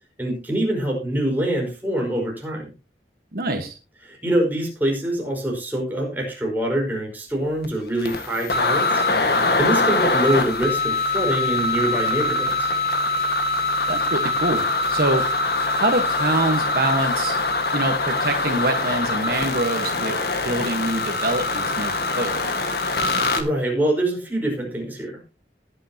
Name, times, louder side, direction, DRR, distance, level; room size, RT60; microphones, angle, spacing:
voice 1, 0.2-2.7 4.0-9.0 9.6-12.7 23.4-25.2, right 1 dB, 10° right, -1 dB, 5.0 m, -24 dB
voice 2, 3.3-3.8 13.9-15.2 15.7-17.3 17.7-20.1 20.4-22.3, right 2 dB, 55° right, 5 dB, 1.4 m, -25 dB
sound 1, 7.6-7.7 8.0-23.4, left 3 dB, 60° left, 1.7 m, -23 dB
20.0 x 8.0 x 2.9 m, 0.31 s
head